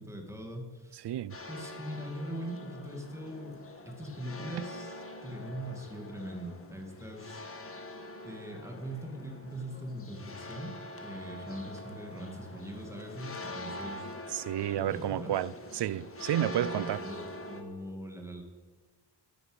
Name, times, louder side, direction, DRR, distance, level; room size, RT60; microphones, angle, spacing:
voice 1, 0.0-1.1 1.5-3.6 3.9-7.4 8.2-10.7 11.0-14.1 14.7-15.3 16.5-18.4, right 1 dB, 5° right, 2.2 m, -41 dB
voice 2, 0.9-1.4 14.3-17.0, right 12 dB, 70° right, 0.5 m, -31 dB
sound 1, 1.3-17.6, left 2 dB, 30° left, 1.6 m, -44 dB
14.0 x 9.8 x 8.1 m
wide cardioid pair, 150°, 43 cm